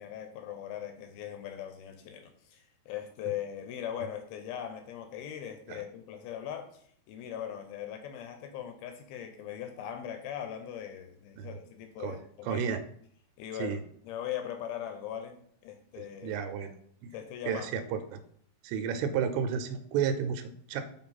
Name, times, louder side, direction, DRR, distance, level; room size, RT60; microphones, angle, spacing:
voice 1, 0.0-12.7 13.4-16.4 17.1-17.8, left 10 dB, 85° left, 6 dB, 2.2 m, -40 dB
voice 2, 12.4-12.8 13.6-13.8 16.0-16.7 17.0-17.1 17.5-18.2 18.6-20.8, right 7 dB, 90° right, 8 dB, 2.8 m, -32 dB
6.9 x 4.0 x 4.1 m, 0.63 s
omnidirectional pair, 4.9 m